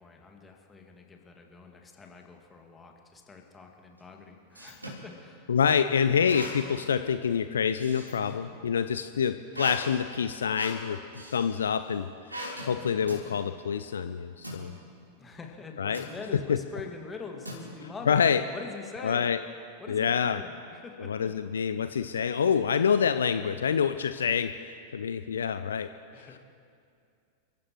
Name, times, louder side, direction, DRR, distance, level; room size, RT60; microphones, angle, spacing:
voice 1, 0.0-5.5 15.2-18.2 18.5-19.3 19.8-21.3 26.1-26.4, left 4 dB, 15° left, 2 dB, 2.1 m, -44 dB
sound 1, 4.0-5.1 6.3-6.9 7.2-8.5 9.5-11.5 12.3-12.7 13.1-13.3 14.4-14.6 15.9-16.2 17.4-18.0, equal, 85° right, 3.7 m, -40 dB
voice 2, 5.5-11.0 11.3-14.7 15.8-16.0 18.1-18.4 19.0-19.4 19.9-20.4 21.0-24.5 24.9-25.9 26.2-26.3, left 7 dB, 70° left, 11 dB, 0.5 m, -27 dB
29.0 x 15.0 x 3.1 m, 2.4 s
figure-of-eight pair, 90°, 0 cm